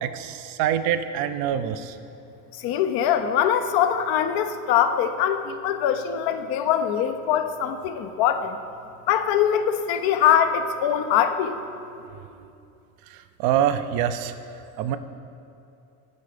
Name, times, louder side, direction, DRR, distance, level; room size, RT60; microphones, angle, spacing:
voice 1, 0.0-2.0 13.4-14.3 14.8-15.0, right 10 dB, 85° right, 10 dB, 0.5 m, -25 dB
voice 2, 2.6-8.6 9.1-11.5, left 9 dB, 80° left, 8 dB, 0.6 m, -22 dB
8.2 x 4.7 x 5.0 m, 2.6 s
supercardioid pair, 80°, 35 cm